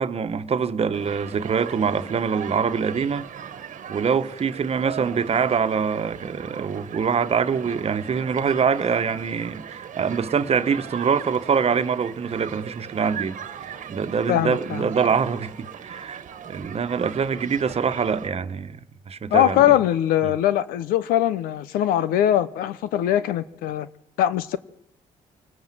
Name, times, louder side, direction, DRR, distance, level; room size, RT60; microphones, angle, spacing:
voice 1, 0.0-3.3 3.9-18.8 19.1-19.8 20.2-20.3, right 6 dB, 45° right, 1.3 m, -24 dB
Human group actions, 0.9-18.3, right 8 dB, 65° right, 1.4 m, -39 dB
voice 2, 14.3-14.9 19.3-23.9 24.2-24.6, left 12 dB, 90° left, 0.9 m, -21 dB
25.5 x 19.5 x 7.6 m
supercardioid pair, 75°, 14 cm